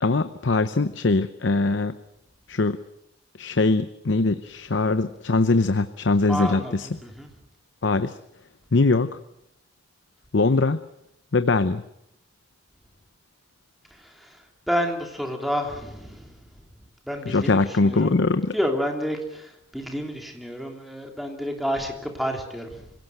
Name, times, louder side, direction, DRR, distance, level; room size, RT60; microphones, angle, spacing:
voice 1, 0.0-2.0 2.5-2.8 3.4-6.9 7.8-8.2 8.7-9.2 10.3-10.8 11.3-11.8 17.3-18.5, left 3 dB, 75° left, 12 dB, 0.8 m, -22 dB
voice 2, 6.3-7.3 14.0-16.4 17.1-18.1 18.5-22.9, equal, ahead, 2 dB, 2.9 m, -30 dB
25.5 x 17.0 x 7.9 m, 0.82 s
head